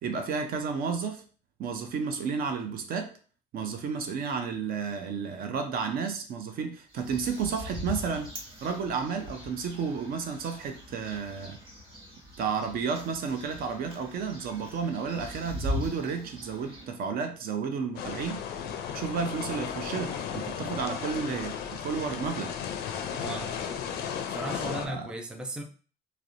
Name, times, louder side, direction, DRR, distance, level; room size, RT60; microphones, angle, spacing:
voice 1, 0.0-1.2 1.6-3.1 3.5-8.3 8.6-11.6 12.4-18.4 18.9-22.5 24.8-25.1, right 5 dB, 60° right, 6 dB, 0.5 m, -32 dB
sound 1, 6.9-16.8, left 1 dB, 30° right, 1.1 m, -40 dB
sound 2, 17.9-24.9, left 8 dB, 75° left, 0.4 m, -35 dB
voice 2, 23.2-23.7 24.3-25.6, right 1 dB, 5° right, 3 dB, 0.3 m, -36 dB
2.8 x 2.0 x 2.5 m, 0.39 s
cardioid pair, 110°, 17 cm